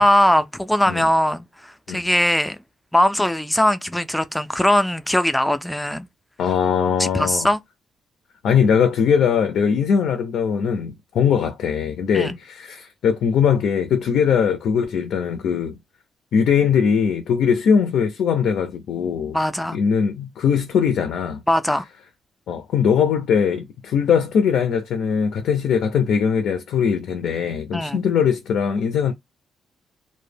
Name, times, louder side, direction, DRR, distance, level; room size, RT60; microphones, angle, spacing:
voice 1, 0.0-2.6 2.9-6.1 7.0-7.6 12.1-12.4 19.3-19.8 21.5-21.8 27.7-28.0, left 1 dB, 5° left, 0.3 m, -20 dB
voice 2, 6.4-7.5 8.4-15.8 16.3-19.4 19.7-21.4 22.5-29.1, left 7 dB, 75° left, 0.4 m, -20 dB
2.1 x 2.0 x 3.1 m
cardioid pair, 130°, 0 cm